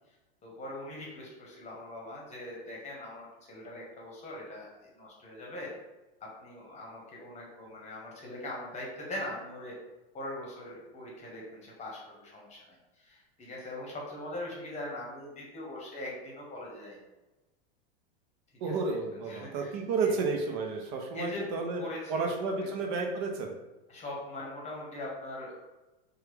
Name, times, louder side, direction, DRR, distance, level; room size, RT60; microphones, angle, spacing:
voice 1, 0.4-4.7 4.9-5.7 6.2-9.7 10.1-12.6 13.0-17.0 18.6-19.0 19.3-19.7 20.0-20.1 21.1-21.4 21.8-22.7 23.9-25.5, left 1 dB, 25° left, -3 dB, 1.0 m, -41 dB
voice 2, 18.6-21.8 22.1-23.6, right 4 dB, 50° right, 2 dB, 0.6 m, -31 dB
3.0 x 2.2 x 3.4 m, 1.1 s
supercardioid pair, 125°, 30 cm